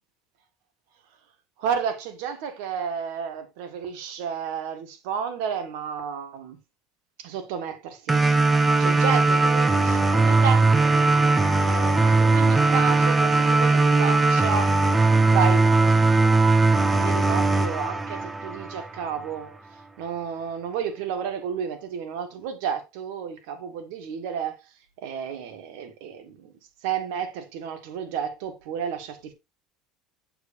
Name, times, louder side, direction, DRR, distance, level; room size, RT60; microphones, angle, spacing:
voice 1, 1.6-6.6 7.2-8.2 8.8-10.7 11.6-14.8 15.3-16.4 16.9-19.6 20.0-24.6 25.0-26.5 26.8-29.3, right 7 dB, 80° right, 1.6 m, -31 dB
sound 1, 8.1-19.1, right 3 dB, 15° right, 0.8 m, -19 dB
7.8 x 7.0 x 2.6 m
supercardioid pair, 125°, 0 cm